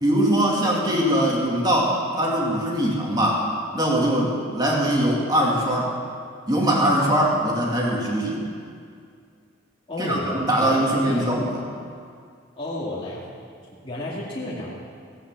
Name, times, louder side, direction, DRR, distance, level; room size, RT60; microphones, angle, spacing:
voice 1, 0.0-3.4 3.7-5.9 6.5-8.4 10.0-11.6, right 1 dB, 20° right, -3 dB, 2.4 m, -22 dB
voice 2, 9.9-10.8 11.1-11.3 12.6-13.2 13.8-14.8, left 1 dB, 25° left, -8 dB, 2.4 m, -31 dB
16.5 x 9.4 x 7.5 m, 2.2 s
head